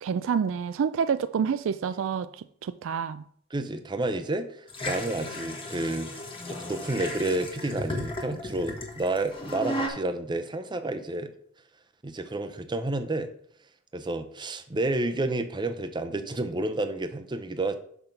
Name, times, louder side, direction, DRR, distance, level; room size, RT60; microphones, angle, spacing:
voice 1, 0.0-2.3 2.6-3.2, right 7 dB, 65° right, 0.3 m, -28 dB
voice 2, 3.5-11.3 12.0-13.3 13.9-17.8, right 2 dB, 20° right, 0.6 m, -30 dB
sound 1, 4.7-9.9, left 1 dB, 25° left, 1.3 m, -35 dB
5.9 x 5.8 x 5.2 m
head